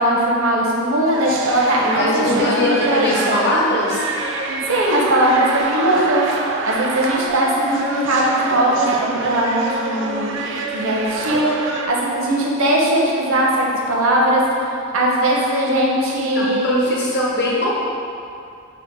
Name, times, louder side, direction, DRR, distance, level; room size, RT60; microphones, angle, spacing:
voice 1, 0.0-3.4 4.7-6.2 6.6-10.4 10.7-11.5 11.9-14.4 14.9-16.9, right 1 dB, 75° right, -3 dB, 0.7 m, -19 dB
sound 1, 1.0-11.9, right 2 dB, 55° right, 0.4 m, -26 dB
voice 2, 1.8-4.1 16.3-17.8, left 1 dB, 50° left, -5 dB, 0.7 m, -21 dB
5.6 x 2.1 x 3.7 m, 2.6 s
head